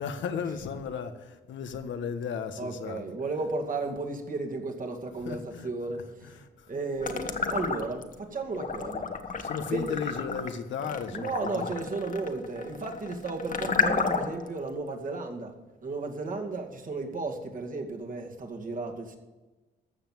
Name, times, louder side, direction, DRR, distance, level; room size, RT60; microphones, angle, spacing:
voice 1, 0.0-3.0 5.3-5.7 6.3-6.7 9.4-11.7, left 6 dB, 70° left, 1.3 m, -35 dB
voice 2, 2.6-6.4 6.7-9.1 9.7-9.9 11.1-19.2, right 3 dB, 45° right, 2.2 m, -34 dB
sound 1, 7.0-8.1 8.5-14.5, left 5 dB, 40° left, 1.4 m, -31 dB
14.5 x 5.9 x 7.7 m
cardioid pair, 90°, 20 cm